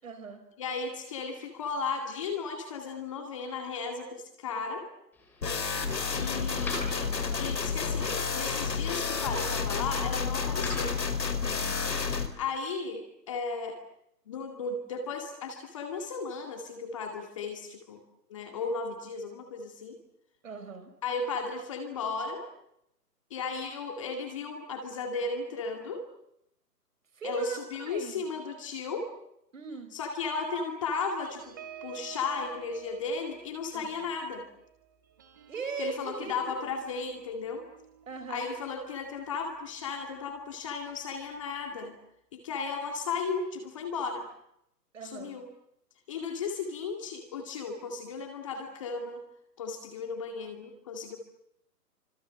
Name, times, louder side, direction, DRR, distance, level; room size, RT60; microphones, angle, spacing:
voice 1, 0.0-0.5 5.5-6.1 7.1-7.7 11.4-11.9 20.4-20.9 27.1-28.3 29.5-29.9 33.7-34.0 35.5-36.6 38.1-38.5 44.9-45.4, right 5 dB, 50° right, 7 dB, 5.3 m, -41 dB
voice 2, 0.6-4.9 6.1-7.1 7.4-11.0 12.4-13.8 14.3-18.0 18.3-20.0 21.0-22.5 23.3-26.0 27.2-29.1 29.9-34.5 35.8-37.6 38.3-42.0 42.3-44.3 45.1-45.5 46.1-49.2 49.6-51.2, left 4 dB, 20° left, 4 dB, 2.2 m, -35 dB
sound 1, 5.1-11.0, left 2 dB, 5° left, 2.6 m, -44 dB
sound 2, 5.4-12.3, left 5 dB, 75° left, 5.0 m, -30 dB
sound 3, 31.2-40.2 40.6-40.8 41.1-41.4, right 9 dB, 10° right, 1.2 m, -51 dB
28.5 x 25.5 x 7.6 m, 0.76 s
hypercardioid pair, 175°, 50 cm